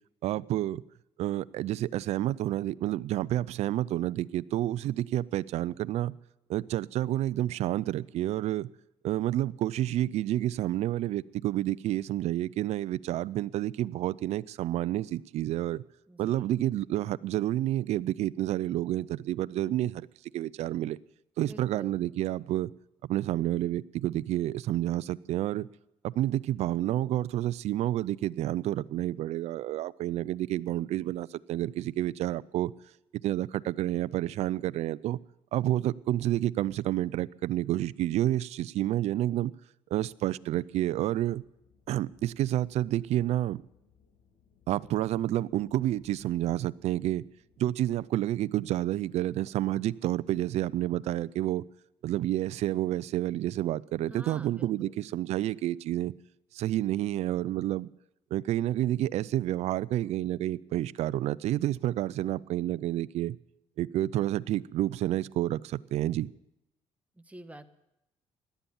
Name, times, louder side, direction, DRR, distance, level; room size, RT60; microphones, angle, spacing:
voice 1, 0.2-0.8 1.2-6.1 6.5-8.7 9.0-15.8 16.2-20.1 20.3-21.0 21.4-22.7 23.1-25.7 26.0-32.7 33.2-35.2 35.5-39.5 39.9-41.4 41.9-43.6 44.7-47.2 47.6-51.6 52.0-56.1 56.5-57.9 58.3-63.4 63.8-66.3, right 13 dB, 70° right, 0.5 m, -29 dB
voice 2, 16.1-16.5 21.4-22.0 54.1-54.9 67.2-67.7, right 1 dB, 10° right, 1.4 m, -48 dB
sound 1, 41.2-48.1, left 6 dB, 65° left, 5.6 m, -65 dB
17.0 x 11.5 x 7.1 m
cardioid pair, 85°, 12 cm